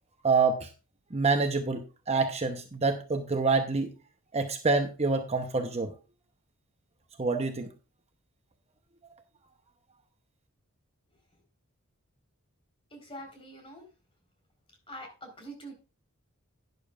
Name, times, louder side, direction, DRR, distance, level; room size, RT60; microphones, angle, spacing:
voice 1, 0.2-0.7 1.1-3.9 4.3-5.9 7.2-7.7, right 4 dB, 30° right, 5 dB, 0.9 m, -27 dB
voice 2, 12.9-13.8 14.9-15.7, right 1 dB, 25° left, 3 dB, 4.4 m, -44 dB
12.0 x 11.0 x 2.4 m, 0.31 s
head